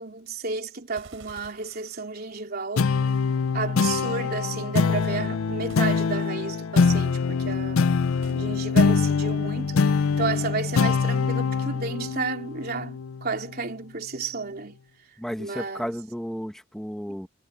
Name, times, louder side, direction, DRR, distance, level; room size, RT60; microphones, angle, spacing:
voice 1, 0.0-2.9 3.5-7.9 8.3-14.8 15.4-15.9, right 4 dB, 45° right, 3.4 m, -32 dB
sound 1, 1.0-2.6 5.7-6.6 8.2-9.1 10.7-11.6, right 3 dB, 70° right, 4.6 m, -53 dB
sound 2, 2.8-13.6, left 5 dB, 80° left, 0.5 m, -24 dB
voice 2, 15.2-17.3, equal, ahead, 1.4 m, -33 dB
head